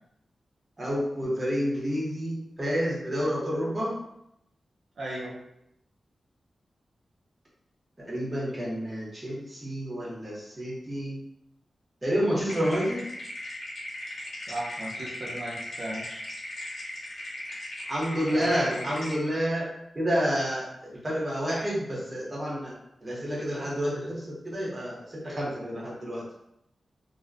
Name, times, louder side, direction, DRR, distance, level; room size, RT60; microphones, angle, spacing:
voice 1, 0.8-3.9 8.0-11.2 12.0-13.0 17.9-19.7 19.9-22.8 23.0-26.2, equal, 25° right, -6 dB, 0.7 m, -29 dB
voice 2, 5.0-5.3 14.5-16.0 18.3-18.7, right 1 dB, 65° right, -5 dB, 0.5 m, -36 dB
sound 1, 12.5-19.2, left 1 dB, 70° left, 0.8 m, -38 dB
2.5 x 2.1 x 2.4 m, 0.80 s
wide cardioid pair, 150°, 0 cm